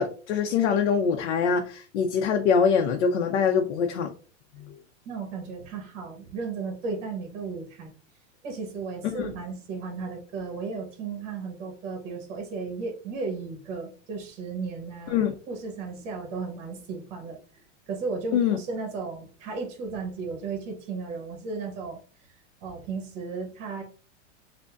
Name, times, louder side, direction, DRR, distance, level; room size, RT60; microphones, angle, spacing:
voice 1, 0.0-4.1 4.6-4.8 9.0-9.3 15.1-15.3 18.3-18.6, left 6 dB, 70° left, 4 dB, 0.6 m, -24 dB
voice 2, 5.0-7.9 8.4-15.2 15.5-17.4 17.9-22.0 22.6-23.8, right 4 dB, 50° right, 2 dB, 1.1 m, -35 dB
5.0 x 2.1 x 2.4 m, 0.38 s
supercardioid pair, 155°, 36 cm